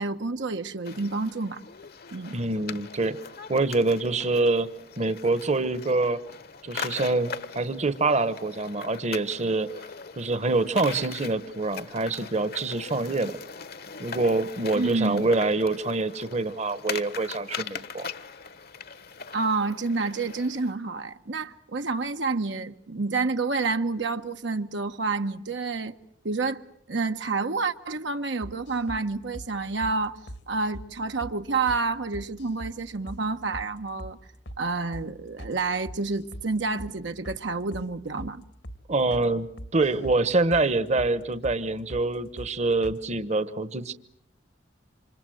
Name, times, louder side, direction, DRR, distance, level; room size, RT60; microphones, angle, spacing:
voice 1, 0.0-1.6 2.1-2.3 14.7-15.2 19.3-25.9 26.2-26.6 26.9-30.2 30.5-34.2 34.6-38.4, right 3 dB, 75° right, 1.1 m, -29 dB
sound 1, 0.9-20.7, left 6 dB, 55° left, 1.2 m, -41 dB
voice 2, 2.3-3.2 3.5-4.7 5.0-6.2 6.6-9.7 10.2-13.4 14.0-18.1 38.9-43.9, right 3 dB, 40° right, 1.1 m, -25 dB
sound 2, 28.4-29.0 29.3-29.5 29.8-30.0 30.3-30.4 30.7-30.9 31.2-31.4 31.7-31.8 32.1-32.8 33.1-33.2 33.5-33.7 34.0-34.2 34.5-34.6 34.9-35.1 35.4-35.6 35.9-36.5 36.8-36.9 37.2-37.4 37.7-37.9 38.2-38.3 38.6-38.8 39.1-39.3 39.6-40.2 40.5-40.7 41.0-41.1 41.4-41.6 41.9-42.1 42.4-42.5 42.8-43.0, equal, 85° left, 2.8 m, -40 dB
28.5 x 26.5 x 7.8 m
head